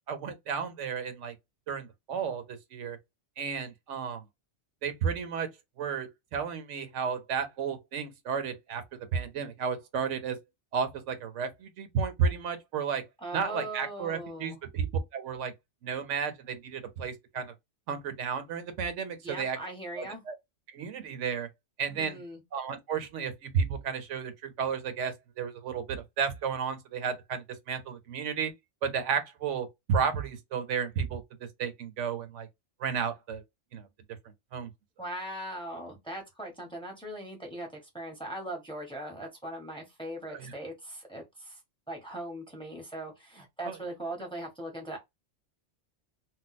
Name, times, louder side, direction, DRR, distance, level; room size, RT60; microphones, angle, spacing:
voice 1, 0.1-1.3 1.7-3.0 3.4-4.2 4.8-5.5 5.8-10.4 10.7-13.0 13.3-15.5 15.8-17.5 17.9-19.6 20.0-20.4 20.7-21.5 21.8-22.2 22.5-28.5 28.8-32.5 32.8-33.4 33.7-33.9 34.5-34.7 40.3-40.5 43.6-43.8, right 6 dB, 80° right, 1.0 m, -33 dB
voice 2, 13.2-14.6 19.2-20.2 21.9-22.4 35.0-41.6 41.9-45.0, right 1 dB, 5° left, 0.8 m, -40 dB
2.5 x 2.1 x 3.9 m
omnidirectional pair, 1.2 m